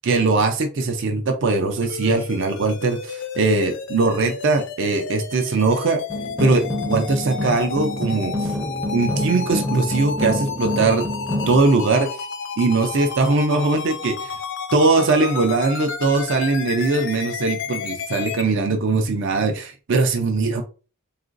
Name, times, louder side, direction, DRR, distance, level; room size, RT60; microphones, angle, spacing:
voice 1, 0.0-6.0 6.4-8.5 8.9-11.1 11.5-12.1 12.6-14.4 14.7-20.6, right 3 dB, 55° right, 5 dB, 0.5 m, -20 dB
sound 1, 1.8-18.4, left 6 dB, 55° left, 0.4 m, -32 dB
sound 2, 6.1-11.6, left 1 dB, 5° right, 0.5 m, -27 dB
3.8 x 2.4 x 2.4 m, 0.34 s
head